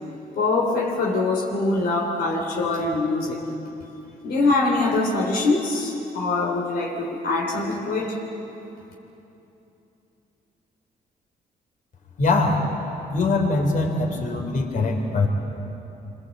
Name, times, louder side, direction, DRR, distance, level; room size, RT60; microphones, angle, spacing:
voice 1, 0.4-3.5 4.2-8.2, left 3 dB, 80° left, -1 dB, 3.3 m, -23 dB
voice 2, 12.2-12.6 13.1-15.3, left 3 dB, 55° left, 3 dB, 4.0 m, -22 dB
27.5 x 23.5 x 8.3 m, 2.9 s
cardioid pair, 125°, 16 cm